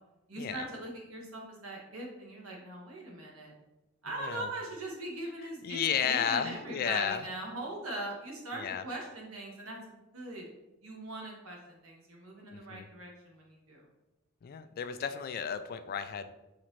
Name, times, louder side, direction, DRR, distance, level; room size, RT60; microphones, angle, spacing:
voice 1, 0.3-3.5 4.0-10.4 10.8-13.8, right 2 dB, 75° right, -1 dB, 1.2 m, -41 dB
voice 2, 4.2-4.5 5.6-7.3 8.5-8.8 12.5-12.9 14.4-16.3, left 7 dB, 45° left, 10 dB, 0.3 m, -33 dB
4.2 x 3.8 x 3.1 m, 0.98 s
head